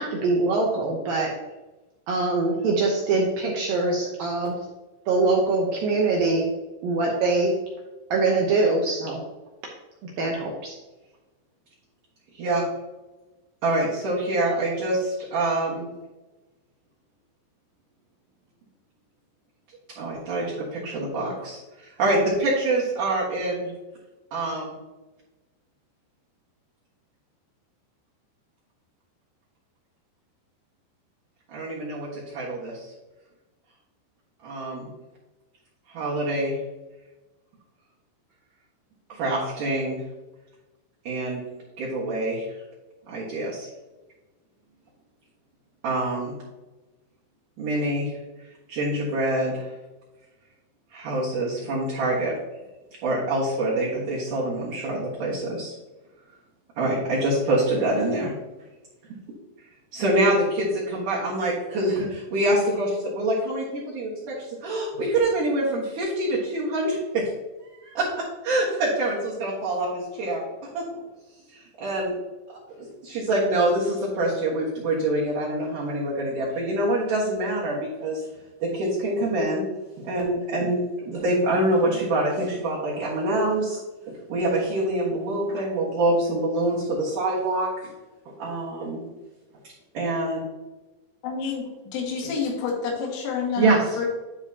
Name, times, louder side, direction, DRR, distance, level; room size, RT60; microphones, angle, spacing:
voice 1, 0.0-1.3 2.1-4.6 5.1-6.5 6.8-7.6 8.1-9.3 10.2-10.8, right 3 dB, 80° right, -1 dB, 2.0 m, -23 dB
voice 2, 13.6-15.9 20.0-23.7 24.3-24.8 31.5-32.9 34.4-34.9 35.9-36.6 39.1-40.0 41.0-41.4 41.8-42.5 43.1-43.7 45.8-46.3 47.6-48.1 48.7-49.7 50.9-52.3 53.0-55.7 56.8-58.3 59.9-67.3 67.7-70.4 70.7-70.8 71.5-72.1 72.8-78.2 78.6-79.6 80.0-83.8 84.1-87.9 88.3-89.0 89.9-90.4 93.6-94.1, right 1 dB, 60° right, -6 dB, 2.4 m, -25 dB
voice 3, 91.2-94.1, left 5 dB, 85° left, -1 dB, 4.2 m, -29 dB
11.5 x 4.9 x 2.8 m, 1.1 s
omnidirectional pair, 5.4 m